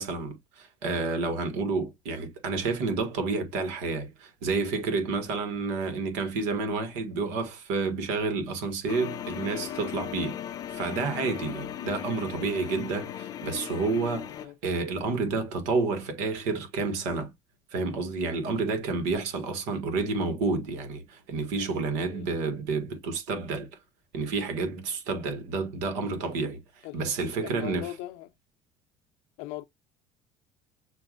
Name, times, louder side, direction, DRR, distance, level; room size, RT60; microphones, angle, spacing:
voice 1, 0.0-10.4 10.7-14.3 14.6-17.3 17.7-23.7 24.1-26.6 26.9-27.9, right 4 dB, 85° right, 1.7 m, -30 dB
sound 1, 8.9-14.5, left 10 dB, 35° left, 0.5 m, -37 dB
voice 2, 27.4-28.3 29.4-29.7, left 16 dB, 85° left, 0.6 m, -39 dB
6.8 x 2.6 x 2.5 m
cardioid pair, 175°, 11 cm